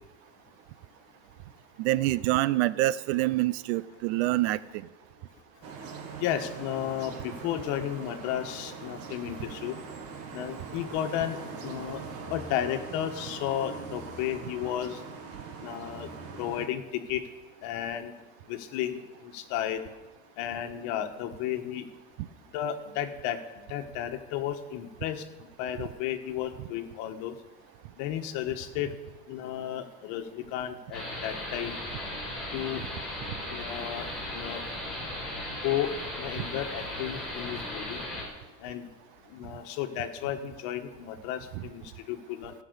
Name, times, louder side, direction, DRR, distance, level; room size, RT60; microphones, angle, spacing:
voice 1, 1.8-4.6, right 17 dB, 85° right, 18 dB, 0.6 m, -26 dB
sound 1, 5.6-16.7, right 5 dB, 50° right, 2.1 m, -42 dB
voice 2, 6.2-9.7 10.3-12.0 12.3-15.0 15.6-16.1 16.3-17.2 17.6-18.1 18.5-19.8 20.4-21.8 22.5-23.4 23.7-25.2 25.6-27.3 28.0-28.9 29.3-31.8 32.5-32.8 33.5-34.1 34.3-34.6 35.6-35.9 36.2-38.0 38.6-38.9 39.3-42.5, left 11 dB, 70° left, 8 dB, 1.5 m, -33 dB
sound 2, 30.9-38.2, left 1 dB, ahead, 5.2 m, -36 dB
17.0 x 6.0 x 8.2 m, 1.1 s
cardioid pair, 140°, 31 cm